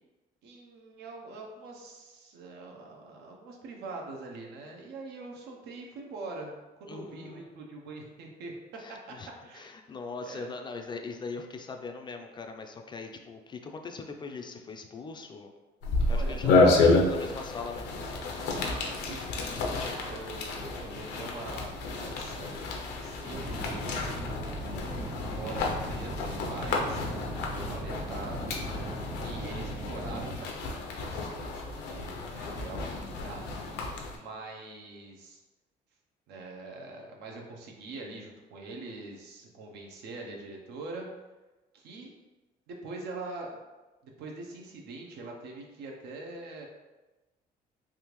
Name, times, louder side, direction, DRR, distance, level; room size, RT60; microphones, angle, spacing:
voice 1, 0.4-6.5 6.8-8.5 9.1-9.2 9.4-9.7 10.2-10.5 16.1-16.9 18.5-24.1 24.6-25.1 25.4-27.0 27.5-28.7 29.2-35.4 36.3-41.1 41.7-42.1 42.7-43.5 44.0-46.7, right 2 dB, 80° right, 0 dB, 0.7 m, -43 dB
voice 2, 6.9-7.6 8.8-15.5 16.1-17.9 23.2-23.5 29.5-29.6, left 4 dB, 25° left, 4 dB, 0.3 m, -41 dB
sound 1, 15.8-34.2, left 3 dB, 85° left, 0.6 m, -30 dB
sound 2, 23.3-30.4, equal, 40° right, 1.1 m, -38 dB
3.5 x 2.4 x 3.0 m, 1.2 s
cardioid pair, 110°, 17 cm